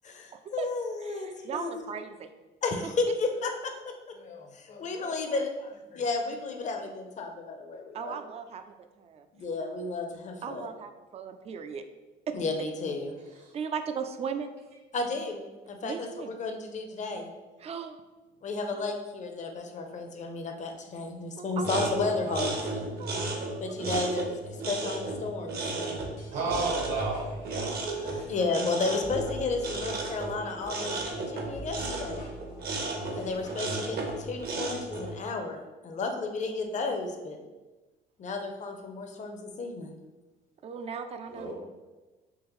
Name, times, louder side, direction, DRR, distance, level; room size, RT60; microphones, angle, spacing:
voice 1, 0.0-1.8 2.6-8.2 9.3-10.7 12.3-13.1 14.9-15.4 15.7-17.3 18.4-22.6 23.6-26.0 28.0-32.3 33.1-37.4 38.2-39.9, left 3 dB, 40° left, 4 dB, 0.6 m, -33 dB
voice 2, 1.0-2.3 7.9-9.3 10.4-11.8 12.3-12.4 13.5-14.5 15.8-16.3 17.6-18.0 18.7-18.8 21.4-22.4 23.0-24.0 25.8-26.0 28.1-28.3 40.6-41.5, right 6 dB, 35° right, 8 dB, 0.3 m, -38 dB
sound 1, 21.6-35.2, right 2 dB, 55° right, 0.8 m, -34 dB
sound 2, 25.9-34.4, right 1 dB, 90° left, 1.1 m, -45 dB
voice 3, 26.3-27.8 41.3-41.5, right 3 dB, 75° right, -3 dB, 1.4 m, -32 dB
3.7 x 2.9 x 3.0 m, 1.2 s
supercardioid pair, 80°, 19 cm